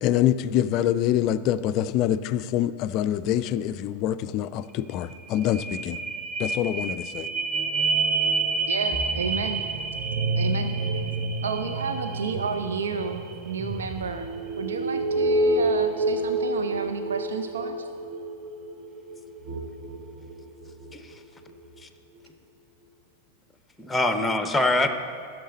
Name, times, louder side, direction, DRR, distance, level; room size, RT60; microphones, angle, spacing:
voice 1, 0.0-6.0 6.4-7.3, left 11 dB, 40° left, 13 dB, 0.4 m, -25 dB
sound 1, 4.7-4.8 5.1-21.0 21.5-21.6, right 3 dB, 40° right, 0.9 m, -28 dB
voice 2, 8.7-9.6 10.4-11.1 11.4-14.3 14.6-17.9, right 5 dB, 65° right, 8 dB, 0.5 m, -31 dB
sound 2, 8.9-14.9, equal, 10° right, 1.0 m, -41 dB
voice 3, 23.8-24.9, left 2 dB, 10° left, 8 dB, 0.7 m, -24 dB
14.0 x 6.6 x 4.2 m, 2.3 s
figure-of-eight pair, 90°, 0 cm